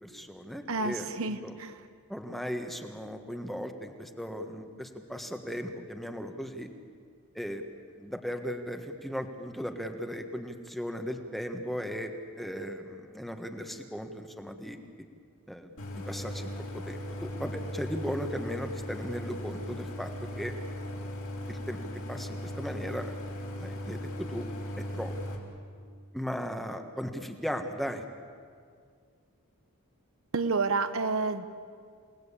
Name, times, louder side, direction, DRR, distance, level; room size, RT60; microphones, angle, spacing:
voice 1, 0.0-1.5 2.1-6.7 7.3-7.6 8.0-14.8 15.5-20.1 20.4-20.5 21.5-21.8 22.1-23.2 23.5-24.5 24.9-25.1 26.1-28.0, equal, ahead, 5 dB, 1.5 m, -37 dB
voice 2, 0.7-1.8 30.3-31.5, right 4 dB, 65° right, 10 dB, 1.0 m, -30 dB
Idling, 15.8-25.4, equal, 65° left, 4.3 m, -38 dB
29.0 x 18.5 x 8.5 m, 2.1 s
head